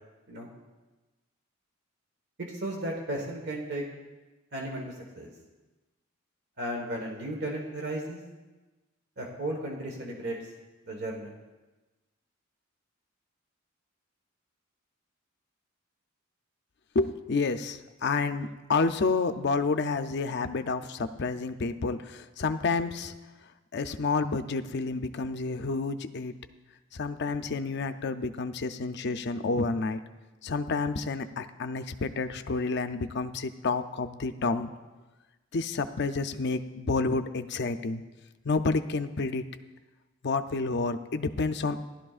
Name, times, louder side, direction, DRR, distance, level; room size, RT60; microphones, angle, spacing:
voice 1, 2.4-3.8 4.5-4.8 5.1-5.3 6.6-8.2 9.2-10.4 10.9-11.3, right 1 dB, 55° right, 0 dB, 1.4 m, -34 dB
voice 2, 16.9-23.1 23.7-26.3 26.9-30.0 30.4-34.7 35.5-38.0 38.4-39.4 40.2-41.8, left 3 dB, 55° left, 9 dB, 0.5 m, -29 dB
16.5 x 11.5 x 2.5 m, 1.2 s
head